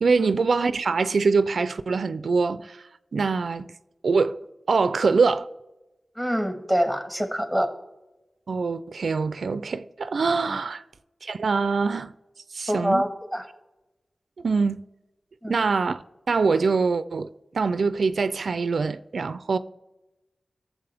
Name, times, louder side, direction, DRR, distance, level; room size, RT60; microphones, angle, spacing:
voice 1, 0.0-2.8 3.1-3.7 4.0-4.4 4.7-5.5 8.5-10.8 11.2-12.1 12.5-13.0 14.4-14.8 15.5-17.3 17.5-19.6, right 4 dB, 80° right, 0.4 m, -24 dB
voice 2, 6.2-7.7 10.5-10.6 12.7-13.5 15.4-15.5, equal, 5° left, 1.7 m, -25 dB
17.0 x 7.3 x 3.4 m
wide cardioid pair, 60°, 0 cm